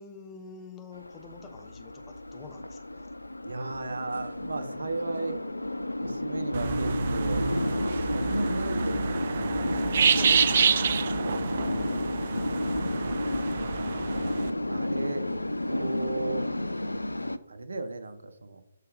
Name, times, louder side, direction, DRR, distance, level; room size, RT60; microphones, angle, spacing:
voice 1, 0.0-3.1 9.9-10.8, left 5 dB, 15° left, 5 dB, 1.0 m, -48 dB
sound 1, 0.9-17.4, left 1 dB, 85° left, 0.4 m, -31 dB
voice 2, 3.4-5.4 6.0-7.5 7.8-9.2 11.2-11.5 11.7-12.1 14.6-15.3 15.7-16.5 17.5-18.6, right 3 dB, 70° right, 8 dB, 1.0 m, -35 dB
sound 2, 6.5-14.5, right 6 dB, 45° right, 0.5 m, -28 dB
6.7 x 4.7 x 5.1 m, 0.83 s
figure-of-eight pair, 140°, 0 cm